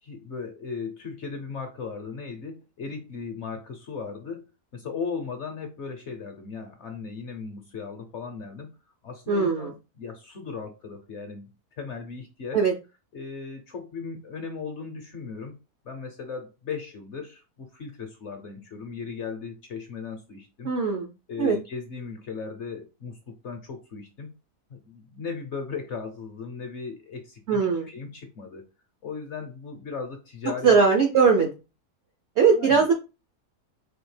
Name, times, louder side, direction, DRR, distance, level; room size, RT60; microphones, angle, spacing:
voice 1, 0.0-4.4 4.7-8.7 9.0-11.5 11.8-12.6 13.1-15.5 15.8-20.7 21.3-24.3 24.7-28.7 29.0-30.8 31.2-31.3 32.5-32.8, left 5 dB, 60° left, 5 dB, 0.8 m, -37 dB
voice 2, 9.3-9.7 12.5-12.7 20.6-21.1 21.4-21.6 27.5-27.9 30.6-31.5 32.4-32.9, right 5 dB, 65° right, 3 dB, 0.6 m, -20 dB
4.2 x 2.7 x 3.2 m, 0.29 s
omnidirectional pair, 1.7 m